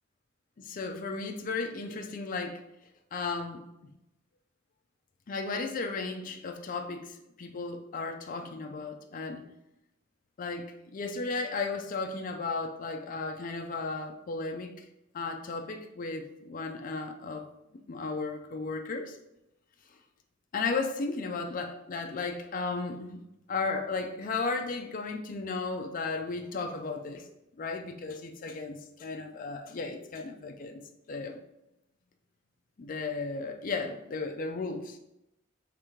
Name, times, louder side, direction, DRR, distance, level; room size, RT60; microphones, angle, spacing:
voice 1, 0.6-2.6 3.1-3.9 5.3-9.4 10.4-14.7 15.1-17.5 17.9-19.2 20.5-23.2 23.5-27.2 27.6-30.8 31.1-31.4 32.8-35.0, left 3 dB, 45° left, 4 dB, 0.4 m, -35 dB
5.0 x 3.2 x 3.0 m, 0.87 s
head